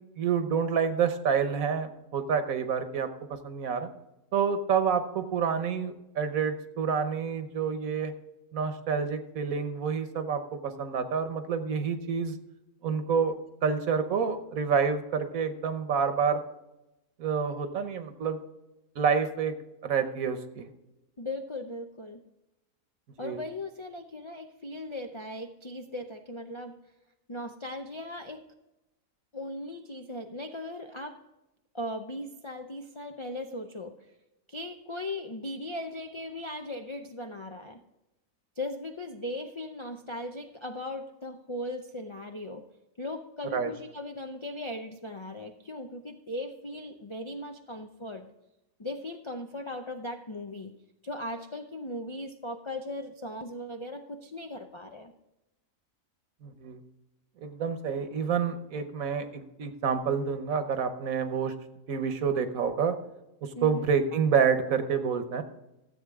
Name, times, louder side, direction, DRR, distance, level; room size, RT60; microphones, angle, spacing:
voice 1, 0.2-3.9 4.3-8.1 8.5-12.3 12.8-13.3 13.6-16.4 17.2-18.4 19.0-19.5 19.8-20.7 23.2-23.4 43.5-43.7 56.4-56.8 57.4-61.5 61.9-63.0 63.4-65.4, right 6 dB, 75° right, 9 dB, 1.4 m, -28 dB
voice 2, 21.2-22.2 23.2-26.8 27.3-28.4 29.3-31.2 31.7-33.9 34.5-37.8 38.6-42.6 43.0-48.3 48.8-50.7 51.0-55.1 63.6-63.9, left 1 dB, 45° left, 5 dB, 0.3 m, -38 dB
13.5 x 7.9 x 3.6 m, 0.95 s
omnidirectional pair, 1.5 m